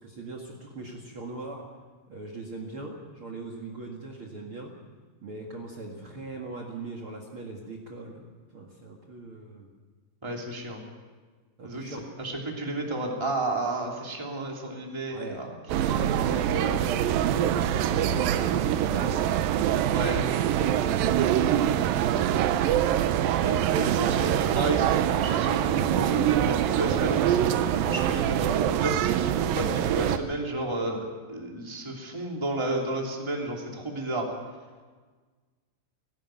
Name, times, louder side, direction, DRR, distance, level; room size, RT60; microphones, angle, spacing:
voice 1, 0.0-1.6 2.1-4.7 5.2-8.2 8.5-9.7 11.6-12.1 15.1-15.4 15.8-19.2 19.9-22.3 29.9-30.2, right 3 dB, 45° right, 1 dB, 2.5 m, -39 dB
voice 2, 10.2-10.8 11.6-15.5 15.8-16.0 19.9-20.2 23.4-29.3 29.5-34.2, right 2 dB, 10° right, 0 dB, 2.7 m, -32 dB
sound 1, 15.7-30.2, right 10 dB, 90° right, 2.6 m, -24 dB
18.0 x 17.5 x 9.1 m, 1.4 s
omnidirectional pair, 4.0 m